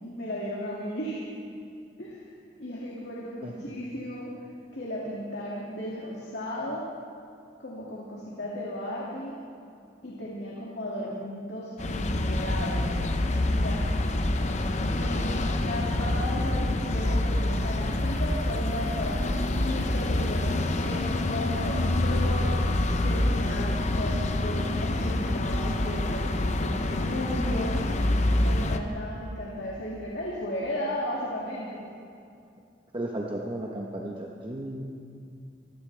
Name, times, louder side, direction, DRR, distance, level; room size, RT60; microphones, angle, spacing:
voice 1, 0.0-1.2 2.0-2.2 2.6-4.3 4.7-6.8 7.6-9.4 10.0-13.8 14.7-22.5 23.0-27.8 28.4-31.8, left 1 dB, 70° left, -5 dB, 2.4 m, -35 dB
sound 1, 11.8-28.8, left 1 dB, 40° left, 0.8 m, -26 dB
voice 2, 32.9-34.8, right 1 dB, 30° right, -1 dB, 1.1 m, -34 dB
25.0 x 16.0 x 3.4 m, 2.5 s
head